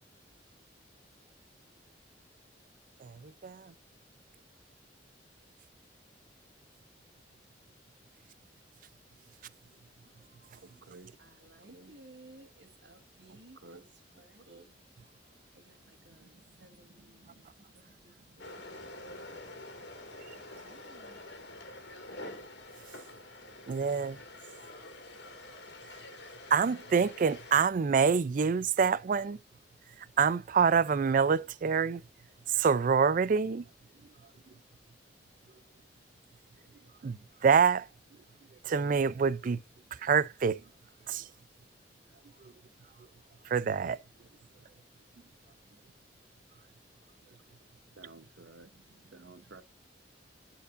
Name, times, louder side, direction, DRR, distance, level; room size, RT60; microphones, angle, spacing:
voice 1, 3.0-3.7 23.7-24.2 26.5-29.4 30.0-32.0 32.5-33.7 37.0-37.9 38.6-39.6 39.9-40.6 41.1-41.3 43.4-44.0, right 6 dB, 50° right, 0.4 m, -26 dB
voice 2, 11.2-14.7 15.5-19.7 20.5-21.2, right 2 dB, 75° right, 1.6 m, -58 dB
voice 3, 13.3-13.9 48.0-48.7 49.1-49.6, right 3 dB, 90° right, 0.9 m, -52 dB
sound 1, 18.4-27.6, left 2 dB, 75° left, 2.1 m, -47 dB
12.0 x 4.6 x 2.5 m
head